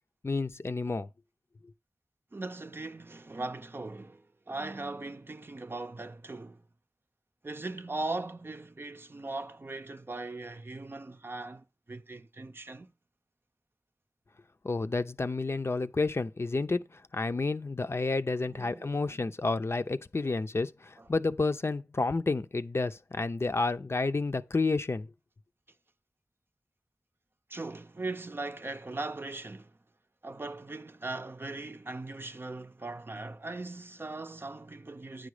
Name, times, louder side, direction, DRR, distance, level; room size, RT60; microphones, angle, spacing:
voice 1, 0.2-1.1 14.6-16.8 17.1-25.1, left 3 dB, 50° left, 0.6 m, -30 dB
voice 2, 2.3-6.6 7.4-12.9 18.5-19.2 20.2-20.4 21.0-21.1 27.5-29.8 30.2-35.3, right 2 dB, 40° right, 0.6 m, -39 dB
9.4 x 5.2 x 4.9 m
wide cardioid pair, 50°, 6 cm